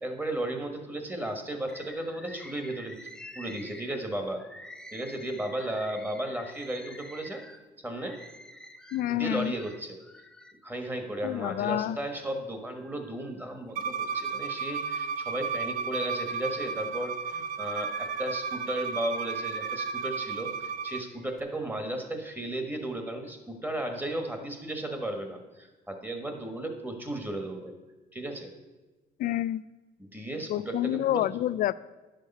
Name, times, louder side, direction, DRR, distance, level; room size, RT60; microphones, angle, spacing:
voice 1, 0.0-3.0 3.3-4.4 4.9-7.4 7.8-8.2 9.1-10.0 10.6-27.7 28.1-28.5 30.0-31.3, right 1 dB, 10° right, 5 dB, 1.4 m, -35 dB
Bird, 1.7-10.6 11.1-12.1 12.7-13.7 14.1-15.5 16.0-20.2 20.9-21.4, left 1 dB, 5° left, 0.5 m, -50 dB
voice 2, 8.9-9.5 11.2-12.0 29.2-29.6 30.5-31.7, left 13 dB, 55° left, 17 dB, 0.4 m, -28 dB
Bowed string instrument, 13.8-21.0, right 5 dB, 55° right, 0.5 m, -33 dB
10.5 x 6.6 x 5.4 m, 1.2 s
cardioid pair, 110°, 17 cm